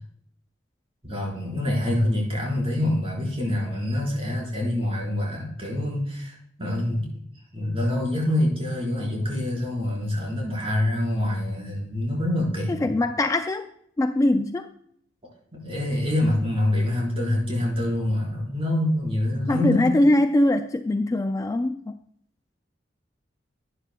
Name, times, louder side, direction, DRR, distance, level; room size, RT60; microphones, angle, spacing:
voice 1, 1.0-7.2 7.5-12.9 15.5-20.0, left 1 dB, 30° right, -2 dB, 4.3 m, -26 dB
voice 2, 12.7-13.7 14.0-14.7 19.5-22.0, left 1 dB, 15° left, 8 dB, 0.3 m, -22 dB
11.5 x 9.9 x 2.2 m, 0.68 s
head